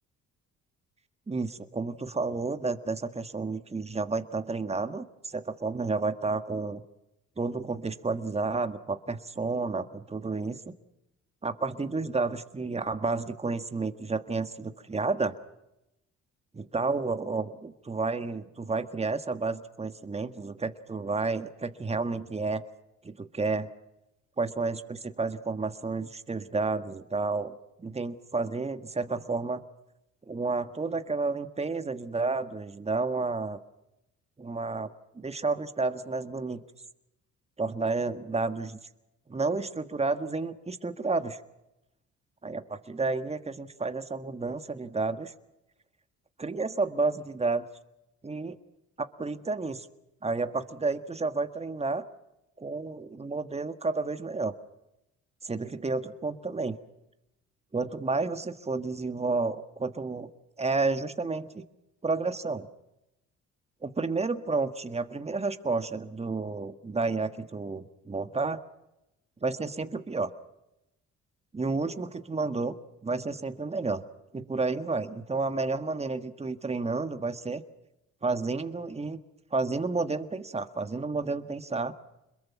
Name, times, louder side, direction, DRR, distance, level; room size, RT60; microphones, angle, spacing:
voice 1, 1.3-6.8 7.4-10.7 11.4-15.4 16.5-22.6 23.0-23.7 24.4-29.6 30.3-33.6 34.4-36.6 37.6-38.8 39.3-41.4 42.4-45.3 46.4-47.6 48.2-48.5 49.0-49.9 50.2-52.1 52.6-54.5 55.4-56.8 57.7-60.3 60.6-61.6 62.0-62.7 63.8-68.6 69.4-70.3 71.5-72.7 73.0-74.0 74.3-77.6 78.2-79.2 79.5-81.9, right 3 dB, 20° right, 10 dB, 1.6 m, -31 dB
26.5 x 22.0 x 5.9 m, 0.90 s
cardioid pair, 90°, 30 cm